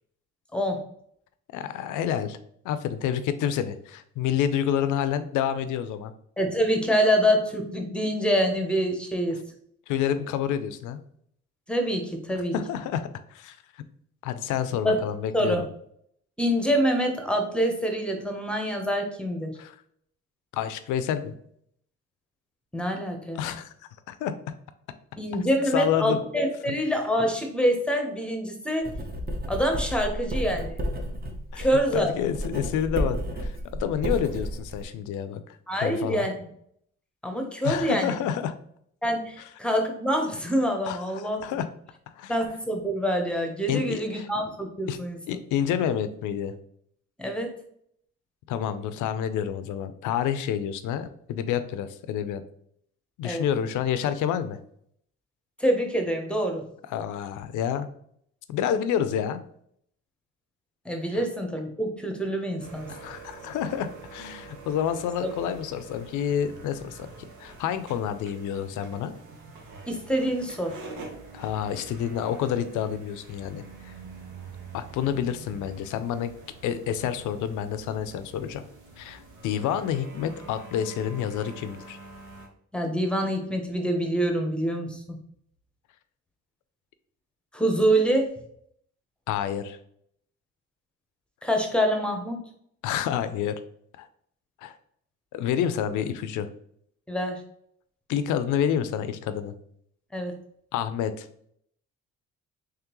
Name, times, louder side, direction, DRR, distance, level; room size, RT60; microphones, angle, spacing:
voice 1, 1.5-2.4 2.6-6.1 9.9-11.0 12.5-13.6 14.2-15.7 19.6-19.8 20.5-21.3 23.4-23.7 24.1-24.3 25.7-26.2 26.7-26.8 31.5-31.7 31.9-36.3 37.6-38.5 40.8-41.7 42.2-42.3 43.7-44.3 44.9-45.0 45.3-46.5 48.5-52.4 53.2-54.6 56.9-57.9 58.5-59.4 61.1-61.2 62.9-67.1 67.4-69.1 71.3-73.9 74.7-76.3 76.6-78.6 79.0-82.0 89.3-89.8 92.8-93.6 94.0-94.1 94.6-94.8 95.3-96.5 98.1-99.5 100.7-101.3, left 9 dB, 85° left, 12 dB, 0.5 m, -28 dB
voice 2, 6.4-9.4 11.7-12.5 14.8-15.0 15.3-15.6 16.4-19.5 22.7-23.5 25.2-28.9 29.5-30.8 31.6-32.1 35.7-36.3 37.2-38.2 39.0-41.4 42.3-45.2 47.2-47.6 53.2-53.4 55.6-56.6 60.8-62.9 69.9-70.8 82.7-85.2 87.5-88.3 91.4-92.5 97.1-97.4 100.1-100.3, equal, 5° left, 3 dB, 0.8 m, -26 dB
Writing, 28.8-34.8, equal, 30° right, 0.8 m, -32 dB
sound 1, 62.6-82.5, right 3 dB, 90° right, 0.9 m, -46 dB
3.6 x 3.3 x 3.0 m, 0.68 s
cardioid pair, 90°, 30 cm